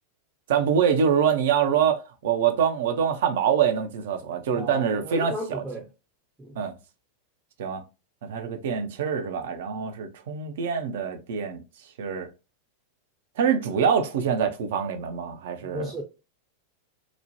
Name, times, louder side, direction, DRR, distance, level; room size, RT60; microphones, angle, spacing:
voice 1, 0.5-5.6 6.6-6.7 7.6-7.8 8.2-11.6 12.0-12.3 13.4-15.9, right 7 dB, 55° right, 0.5 m, -25 dB
voice 2, 4.5-5.9 6.4-6.5 15.6-16.0, right 1 dB, 10° right, 0.6 m, -34 dB
3.0 x 2.1 x 2.6 m
figure-of-eight pair, 90°, 0 cm